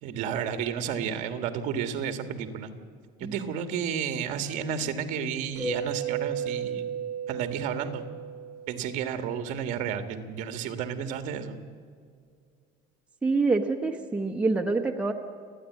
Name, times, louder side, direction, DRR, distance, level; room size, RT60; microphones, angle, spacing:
voice 1, 0.0-2.7 3.2-6.9 7.3-8.1 8.7-11.6, right 7 dB, 55° right, 8 dB, 1.7 m, -32 dB
Mallet percussion, 5.6-9.3, right 7 dB, 20° left, 7.2 m, -34 dB
voice 2, 13.2-15.1, right 3 dB, 5° right, 3 dB, 0.8 m, -26 dB
29.0 x 10.0 x 9.5 m, 2.1 s
cardioid pair, 180°, 15 cm